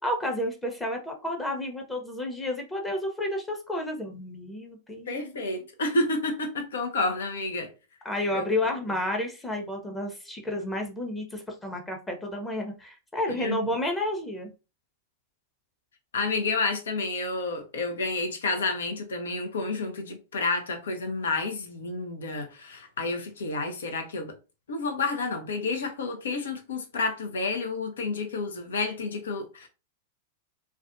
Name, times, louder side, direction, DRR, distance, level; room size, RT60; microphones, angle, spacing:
voice 1, 0.0-5.5 8.0-14.5, left 1 dB, 10° left, 0.7 m, -31 dB
voice 2, 5.1-7.7 8.3-8.5 13.3-13.6 16.1-24.3 24.7-29.7, left 3 dB, 75° left, 0.7 m, -30 dB
2.4 x 2.2 x 2.5 m
hypercardioid pair, 100°, 0 cm